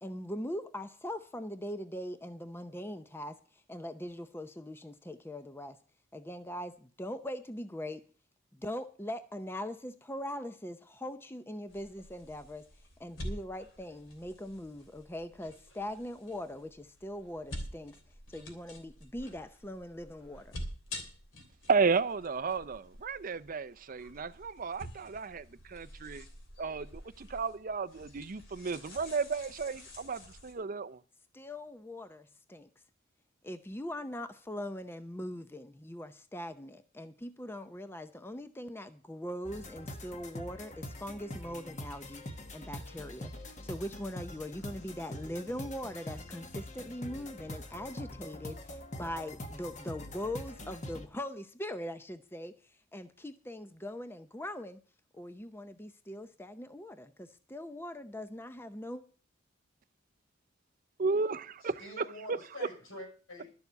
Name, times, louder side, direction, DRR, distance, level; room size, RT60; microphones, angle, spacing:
voice 1, 0.0-3.4 3.7-5.8 6.1-8.0 8.5-12.6 13.0-18.0 18.3-20.5 31.3-32.7 33.4-42.2 42.5-52.5 52.9-54.8 55.1-59.0, left 1 dB, 10° left, 0.6 m, -41 dB
sound 1, 11.7-30.5, left 1 dB, 65° left, 3.2 m, -48 dB
voice 2, 21.7-26.3 26.6-31.0 61.0-62.4, right 4 dB, 45° right, 0.5 m, -33 dB
sound 2, 39.4-51.1, left 1 dB, 35° left, 1.3 m, -44 dB
voice 3, 61.6-63.5, left 1 dB, 85° left, 6.2 m, -46 dB
12.0 x 7.0 x 8.0 m
head